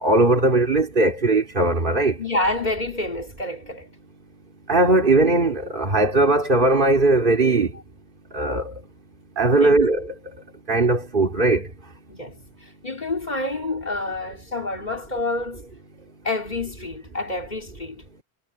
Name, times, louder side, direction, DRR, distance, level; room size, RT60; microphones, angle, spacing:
voice 1, 0.0-2.1 4.7-7.7 8.3-8.6 9.4-10.1 10.7-11.6, right 2 dB, 55° right, 2.8 m, -19 dB
voice 2, 2.2-3.9 9.6-9.9 12.1-12.4 12.8-15.7 16.2-18.0, left 2 dB, 45° left, 3.4 m, -28 dB
omnidirectional pair, 1.0 m